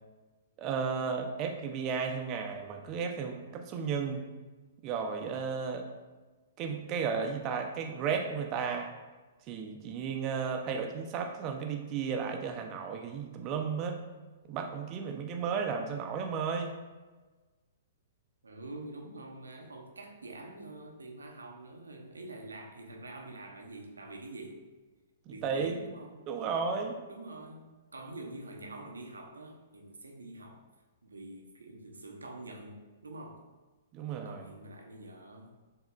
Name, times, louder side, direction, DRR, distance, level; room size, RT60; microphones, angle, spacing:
voice 1, 0.6-4.3 4.8-5.9 6.6-8.9 9.5-14.0 14.5-16.8 25.3-25.8 26.3-26.9 33.9-34.5, right 6 dB, 30° right, 4 dB, 0.6 m, -34 dB
voice 2, 18.4-24.6 25.3-26.3 27.1-30.7 31.0-33.4 34.2-35.5, right 2 dB, 80° right, 2 dB, 0.7 m, -46 dB
7.1 x 2.8 x 2.4 m, 1.2 s
figure-of-eight pair, 115°, 0 cm